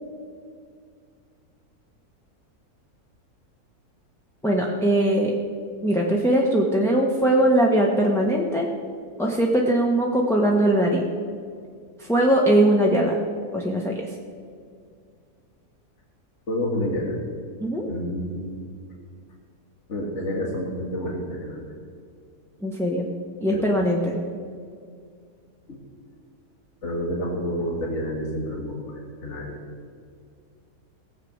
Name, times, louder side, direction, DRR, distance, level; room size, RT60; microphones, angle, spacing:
voice 1, 4.4-5.3 5.8-8.7 9.2-11.0 12.0-13.2 13.5-13.9 17.6-17.9 22.6-23.1 23.4-24.1, right 1 dB, ahead, -2 dB, 0.9 m, -20 dB
voice 2, 16.5-17.1 17.9-18.4 19.9-21.6 23.5-23.7 25.7-25.8 26.8-29.6, equal, 50° left, -1 dB, 2.1 m, -29 dB
18.0 x 7.5 x 6.5 m, 2.2 s
omnidirectional pair, 1.6 m